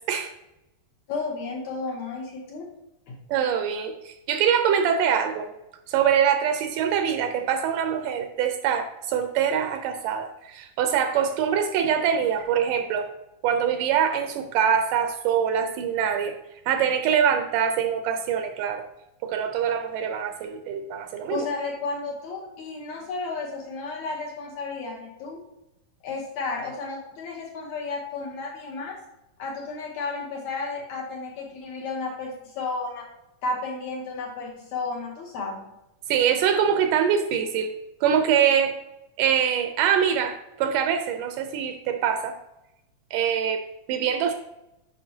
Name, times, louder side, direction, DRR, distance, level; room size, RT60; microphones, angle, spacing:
voice 1, 1.1-2.7 3.1-3.2 21.3-25.4 26.0-29.0 29.4-33.1 33.4-35.7, left 3 dB, 70° left, -1 dB, 2.0 m, -32 dB
voice 2, 3.3-5.5 5.9-13.1 13.4-16.3 16.7-18.8 19.2-21.5 36.1-37.7 38.0-38.7 39.2-42.4 43.1-44.3, right 8 dB, 80° right, 7 dB, 2.0 m, -24 dB
9.3 x 5.5 x 2.8 m, 0.91 s
omnidirectional pair, 4.0 m